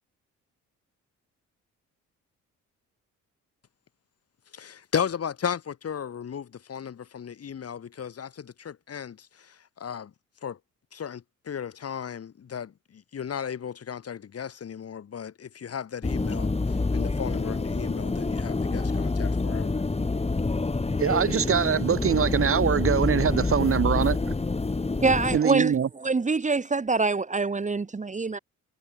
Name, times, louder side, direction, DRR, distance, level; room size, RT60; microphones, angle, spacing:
voice 1, 4.5-10.1 10.4-10.6 10.9-19.8, left 8 dB, 50° left, 6.7 m, -35 dB
sound 1, 16.0-25.4, left 3 dB, 20° left, 4.1 m, -27 dB
voice 2, 21.0-24.3 25.3-25.9, right 7 dB, 45° right, 2.0 m, -23 dB
voice 3, 25.0-28.4, right 4 dB, 25° right, 1.7 m, -25 dB
cardioid pair, 90°, 30 cm